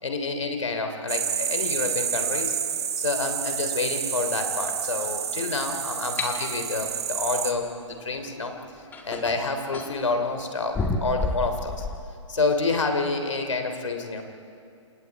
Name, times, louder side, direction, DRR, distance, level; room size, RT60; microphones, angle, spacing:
voice 1, 0.0-2.6 3.0-8.5 9.0-11.9 12.3-14.2, left 3 dB, 70° left, 6 dB, 3.2 m, -28 dB
sound 1, 1.1-7.5, right 8 dB, 55° right, 1.7 m, -29 dB
sound 2, 6.2-6.3 8.2-8.3 8.9-10.0 10.7-12.0, left 2 dB, 10° left, 1.9 m, -29 dB
29.0 x 28.0 x 4.7 m, 2.5 s
figure-of-eight pair, 130°, 16 cm